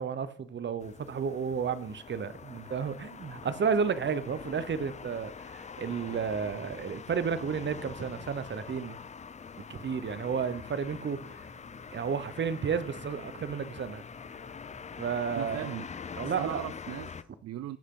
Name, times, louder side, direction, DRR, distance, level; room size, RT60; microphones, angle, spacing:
voice 1, 0.0-9.0 9.7-11.4 11.9-14.0 15.0-15.7 16.2-16.6, right 6 dB, 40° right, 0.9 m, -32 dB
sound 1, 0.8-17.2, left 6 dB, 25° left, 0.5 m, -44 dB
sound 2, 10.0-15.5, left 3 dB, 70° left, 2.7 m, -55 dB
voice 2, 15.3-15.9 16.2-17.8, right 13 dB, 60° right, 0.5 m, -39 dB
16.5 x 6.3 x 3.8 m
cardioid pair, 90°, 30 cm